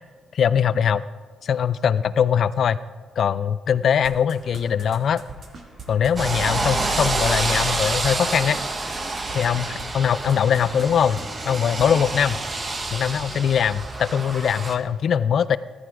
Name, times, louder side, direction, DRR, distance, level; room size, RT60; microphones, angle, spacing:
voice 1, 0.3-1.0 1.4-2.8 3.2-5.2 5.9-8.6 9.3-12.4 12.9-15.6, left 8 dB, 60° left, 15 dB, 0.5 m, -21 dB
sound 1, 4.0-9.8 10.2-10.9 11.2-11.3 11.5-12.0, right 5 dB, 50° right, 2.0 m, -40 dB
sound 2, 4.3-14.1, right 1 dB, 10° right, 2.2 m, -44 dB
sound 3, 6.2-14.8, right 3 dB, 30° right, 1.4 m, -28 dB
14.5 x 11.5 x 5.0 m, 1.4 s
cardioid pair, 90°, 0 cm